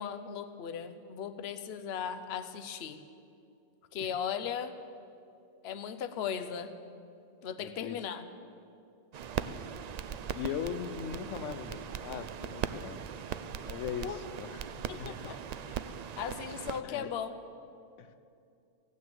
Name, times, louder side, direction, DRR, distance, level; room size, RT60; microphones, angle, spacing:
voice 1, 0.0-3.0 3.9-4.7 5.6-6.7 7.4-8.3 14.0-14.2 14.9-15.4 16.2-17.4, left 8 dB, 60° left, 10 dB, 0.9 m, -37 dB
voice 2, 7.6-8.0 10.3-13.0 13.7-14.6 14.9-15.3 16.8-17.1 18.0-18.1, left 8 dB, 85° left, 11 dB, 1.0 m, -39 dB
sound 1, 9.1-16.8, right 8 dB, 85° right, 0.3 m, -39 dB
15.5 x 9.7 x 7.8 m, 2.6 s
omnidirectional pair, 1.2 m